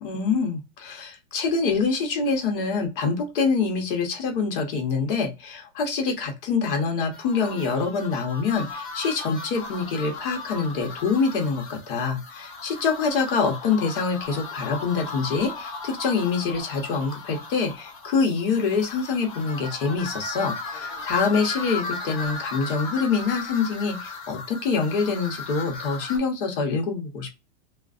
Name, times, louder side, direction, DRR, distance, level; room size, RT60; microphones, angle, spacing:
voice 1, 0.0-27.4, left 5 dB, 50° left, 3 dB, 1.0 m, -25 dB
sound 1, 7.1-26.2, left 3 dB, 30° left, 0.6 m, -36 dB
2.4 x 2.4 x 2.4 m, 0.26 s
supercardioid pair, 170°, 35 cm